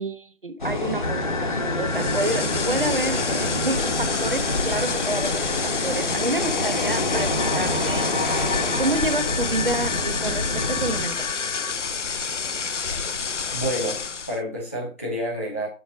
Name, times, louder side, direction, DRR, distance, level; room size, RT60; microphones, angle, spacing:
voice 1, 0.0-8.1 8.8-11.3, right 2 dB, 40° right, 10 dB, 0.8 m, -29 dB
sound 1, 0.6-11.0, left 1 dB, 35° left, 1.1 m, -27 dB
sound 2, 1.0-11.7, left 4 dB, 80° left, 1.1 m, -34 dB
sound 3, 1.9-14.4, left 5 dB, 60° left, 0.6 m, -29 dB
voice 2, 13.5-14.0 14.3-15.7, equal, 10° left, -5 dB, 1.0 m, -28 dB
7.1 x 5.1 x 4.9 m, 0.33 s
figure-of-eight pair, 165°, 40 cm